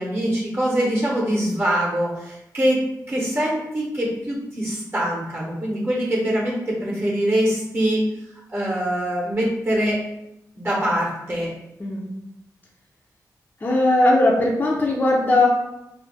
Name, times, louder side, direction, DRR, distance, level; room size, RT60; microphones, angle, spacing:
voice 1, 0.0-8.0 8.5-10.0 10.6-11.5, equal, 35° right, -4 dB, 0.8 m, -23 dB
voice 2, 13.6-15.5, left 2 dB, 25° left, -3 dB, 0.4 m, -18 dB
2.3 x 2.0 x 3.7 m, 0.87 s
wide cardioid pair, 115°, 7 cm